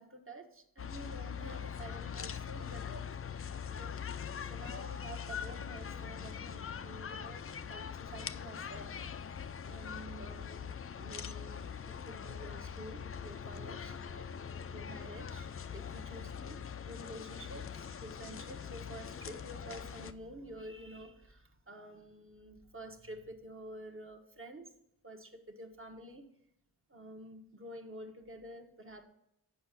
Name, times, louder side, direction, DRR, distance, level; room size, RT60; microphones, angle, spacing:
voice 1, 0.0-3.2 3.8-4.0 4.5-9.0 9.6-14.4 14.7-16.6 16.9-24.7 25.0-26.3 26.9-29.0, right 1 dB, 35° right, 3 dB, 1.3 m, -49 dB
sound 1, 0.8-20.1, left 7 dB, 35° left, 0.5 m, -42 dB
7.0 x 5.0 x 6.6 m, 0.80 s
cardioid pair, 50°, 39 cm